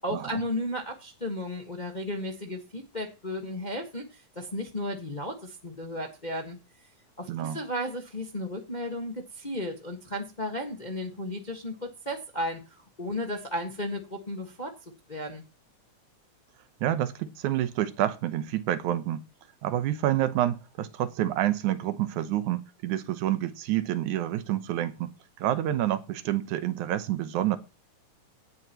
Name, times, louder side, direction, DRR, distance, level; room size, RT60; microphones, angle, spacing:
voice 1, 0.0-6.6 7.2-15.4, left 1 dB, 25° left, 1.1 m, -34 dB
voice 2, 7.3-7.6 16.8-19.2 19.6-27.6, right 12 dB, 85° right, 2.3 m, -28 dB
17.0 x 10.0 x 3.0 m
omnidirectional pair, 3.4 m